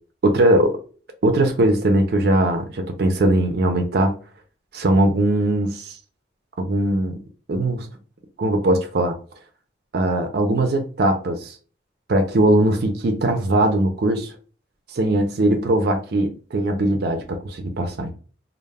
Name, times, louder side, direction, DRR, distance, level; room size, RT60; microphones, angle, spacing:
voice 1, 0.2-0.8 1.2-4.1 4.7-6.0 6.6-7.2 7.5-7.9 8.4-9.1 9.9-11.6 12.1-14.3 14.9-18.1, right 1 dB, 55° right, 6 dB, 0.4 m, -20 dB
2.1 x 2.0 x 3.2 m, 0.39 s
head